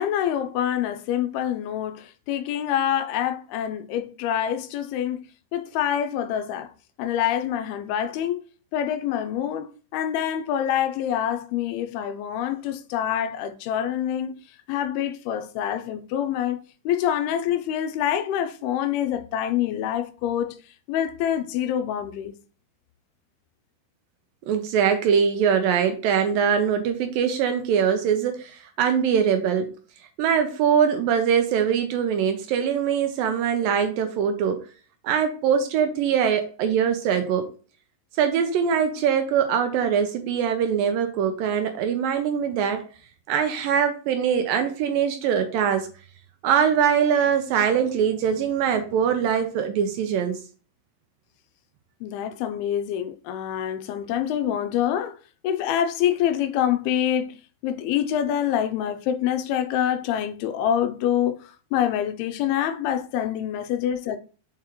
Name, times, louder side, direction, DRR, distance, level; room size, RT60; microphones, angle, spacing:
voice 1, 0.0-6.7 7.0-8.4 8.7-14.4 14.7-16.6 16.9-20.6 20.9-22.4 52.0-55.2 55.4-57.4 57.6-64.2, left 10 dB, 80° left, 2.5 m, -26 dB
voice 2, 24.5-29.7 30.2-34.6 35.0-37.5 38.2-42.8 43.3-45.9 46.4-50.4, right 7 dB, 75° right, 2.2 m, -22 dB
7.2 x 4.8 x 3.0 m
omnidirectional pair, 4.5 m